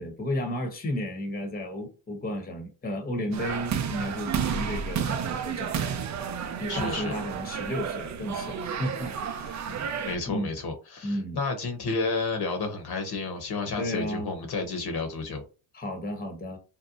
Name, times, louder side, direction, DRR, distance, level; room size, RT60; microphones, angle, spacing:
voice 1, 0.0-5.9 6.6-9.7 10.3-10.5 11.0-11.4 13.8-14.3 15.7-16.6, left 1 dB, 20° left, 0.9 m, -33 dB
sound 1, 3.3-10.2, right 7 dB, 35° right, 0.5 m, -31 dB
voice 2, 6.7-7.2 9.7-15.4, left 3 dB, 50° left, 0.9 m, -31 dB
2.7 x 2.1 x 2.5 m
supercardioid pair, 85°, 50 cm